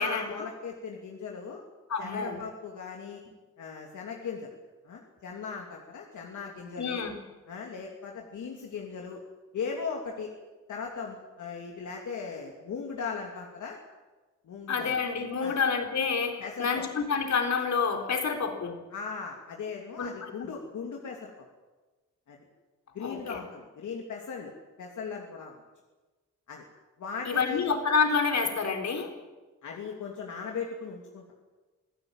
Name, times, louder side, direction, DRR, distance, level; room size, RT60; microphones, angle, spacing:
voice 1, 0.0-1.6 2.0-3.2 3.6-4.5 4.8-7.0 7.5-9.2 9.5-10.3 10.7-13.8 14.4-14.9 15.4-15.6 16.4-16.8 18.9-21.3 22.3-22.4 22.9-24.5 24.8-25.6 26.5-26.6 27.0-27.7 29.6-31.2, left 5 dB, 85° left, 0 dB, 2.8 m, -38 dB
voice 2, 1.9-2.4 6.8-7.2 14.7-18.8 20.0-20.5 23.0-23.4 27.3-29.1, left 5 dB, 70° left, 4 dB, 3.9 m, -28 dB
25.5 x 16.0 x 9.0 m, 1.2 s
cardioid pair, 95°, 29 cm